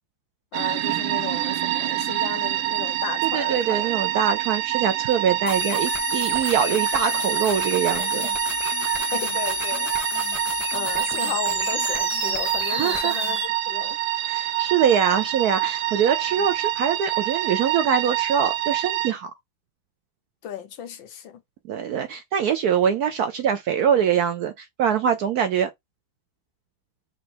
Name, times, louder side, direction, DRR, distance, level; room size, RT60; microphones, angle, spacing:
voice 1, 0.5-4.0 9.0-9.9 10.7-14.0 20.4-21.4, left 9 dB, 75° left, 1.6 m, -34 dB
sound 1, 0.5-19.1, right 14 dB, 85° right, 1.4 m, -26 dB
voice 2, 3.2-8.3 12.7-13.2 14.2-19.3 21.7-25.7, right 8 dB, 70° right, 0.9 m, -23 dB
sound 2, 5.5-13.5, left 3 dB, ahead, 0.6 m, -30 dB
4.3 x 2.6 x 4.3 m
omnidirectional pair, 2.1 m